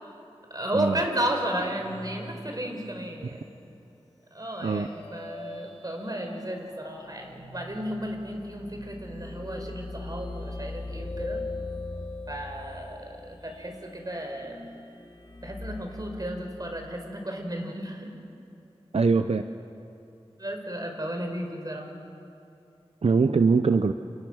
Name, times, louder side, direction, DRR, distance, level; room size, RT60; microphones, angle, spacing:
voice 1, 0.5-3.5 4.3-11.5 12.3-14.7 15.4-18.1 20.4-21.9, right 1 dB, 40° right, 3 dB, 4.9 m, -33 dB
sound 1, 0.7-3.3 3.6-3.7 4.7-16.0, left 2 dB, 40° left, 3.3 m, -41 dB
voice 2, 18.9-19.4 23.0-23.9, right 4 dB, 75° right, 9 dB, 0.7 m, -22 dB
29.5 x 28.0 x 6.3 m, 2.7 s
wide cardioid pair, 50°, 10 cm